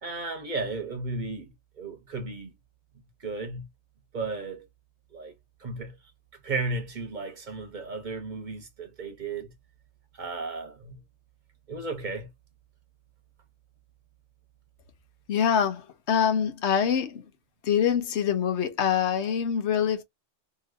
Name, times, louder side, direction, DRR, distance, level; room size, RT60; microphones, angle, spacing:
voice 1, 0.0-2.5 3.2-3.6 4.1-4.7 5.1-5.3 5.6-5.9 6.4-9.5 10.1-11.0 11.7-12.3, right 3 dB, 45° right, 0.9 m, -34 dB
voice 2, 15.3-15.8 16.1-17.2 17.6-20.0, left 8 dB, 75° left, 1.0 m, -24 dB
3.0 x 2.7 x 2.4 m
omnidirectional pair, 1.2 m